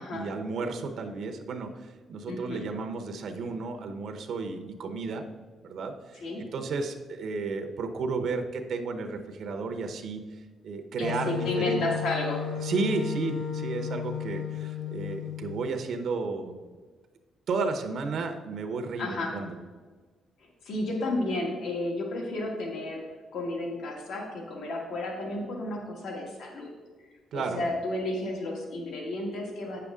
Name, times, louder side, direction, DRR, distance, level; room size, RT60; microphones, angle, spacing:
voice 1, 0.0-1.7 2.1-5.2 5.6-6.2 6.5-10.2 10.6-11.8 12.6-16.5 17.5-19.6 27.3-27.6, right 4 dB, 60° right, 5 dB, 0.8 m, -32 dB
voice 2, 2.3-2.6 6.1-6.4 11.0-12.5 19.0-19.3 20.6-23.0 23.3-26.7 27.3-29.8, left 2 dB, 70° left, 0 dB, 1.8 m, -32 dB
Wind instrument woodwind instrument, 11.0-15.7, left 8 dB, 85° left, 0.8 m, -34 dB
9.1 x 6.8 x 3.7 m, 1.4 s
cardioid pair, 135°, 0 cm